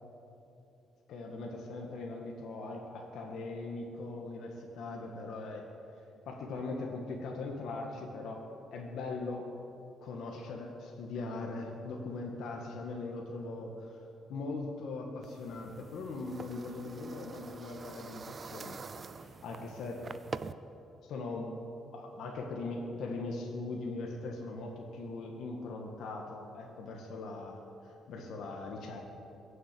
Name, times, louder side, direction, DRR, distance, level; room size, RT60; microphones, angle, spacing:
voice 1, 1.1-5.7 6.3-9.5 10.0-14.0 14.3-18.8 19.1-20.1 21.0-21.6 21.9-29.0, left 3 dB, 70° left, 0 dB, 1.8 m, -40 dB
sound 1, 15.2-20.5, right 5 dB, 30° right, 0.5 m, -45 dB
22.0 x 7.8 x 8.4 m, 2.8 s
cardioid pair, 140°, 0 cm